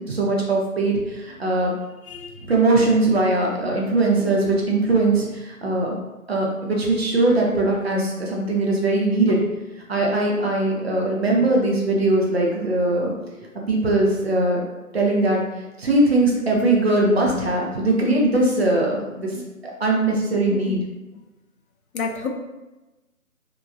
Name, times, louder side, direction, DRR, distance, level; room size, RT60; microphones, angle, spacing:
voice 1, 0.0-1.7 2.5-6.0 6.3-9.4 9.9-13.1 13.7-14.6 14.9-15.4 15.8-20.8, right 2 dB, 45° right, -2 dB, 0.6 m, -20 dB
voice 2, 2.0-2.4 20.5-20.8 21.9-22.3, left 5 dB, 75° left, 3 dB, 0.6 m, -30 dB
3.0 x 2.3 x 2.3 m, 1.1 s
figure-of-eight pair, 160°, 43 cm